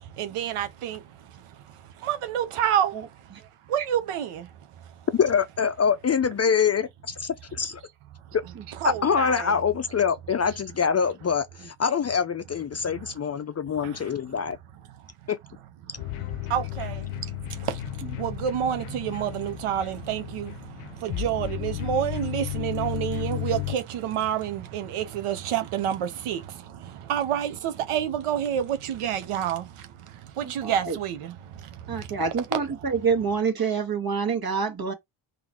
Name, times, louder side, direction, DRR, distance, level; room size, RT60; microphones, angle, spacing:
voice 1, 0.0-5.1 8.8-9.5 13.8-14.1 15.2-15.3 15.8-33.1, right 10 dB, 85° right, 1.0 m, -30 dB
voice 2, 5.1-7.8 8.3-8.4 8.8-14.6 15.3-15.4, left 6 dB, 35° left, 0.4 m, -25 dB
sound 1, 16.0-23.8, left 18 dB, 90° left, 0.6 m, -34 dB
voice 3, 30.6-31.0 31.9-34.9, right 5 dB, 45° right, 1.7 m, -26 dB
3.9 x 3.1 x 3.0 m
supercardioid pair, 60°, 50 cm